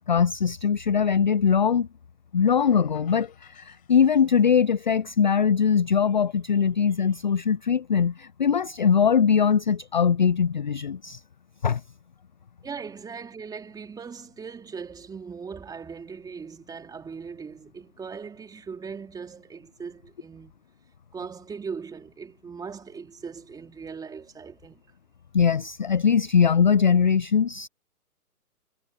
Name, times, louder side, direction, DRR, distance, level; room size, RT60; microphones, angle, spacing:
voice 1, 0.1-1.9 2.3-11.2 11.6-11.8 25.3-27.7, left 7 dB, 35° left, 0.4 m, -21 dB
sound 1, 2.6-4.7, left 13 dB, 20° left, 5.2 m, -54 dB
voice 2, 12.6-20.5 21.1-24.8, right 5 dB, 10° right, 3.4 m, -39 dB
figure-of-eight pair, 135°, 45 cm